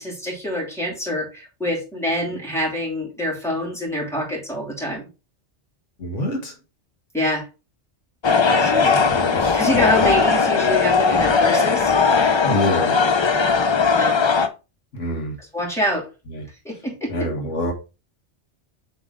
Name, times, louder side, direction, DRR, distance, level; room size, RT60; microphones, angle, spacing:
voice 1, 0.0-5.0 7.1-7.5 8.6-9.0 9.5-11.9 13.9-14.2 15.5-16.1 16.6-17.3, equal, ahead, 2.7 m, -25 dB
voice 2, 6.0-6.5 8.8-9.6 12.4-13.0 14.9-15.4 16.3-16.5 17.1-17.7, left 1 dB, 90° left, 1.8 m, -26 dB
sound 1, 8.2-14.5, left 5 dB, 50° left, 0.3 m, -18 dB
6.9 x 3.6 x 3.7 m
omnidirectional pair, 1.2 m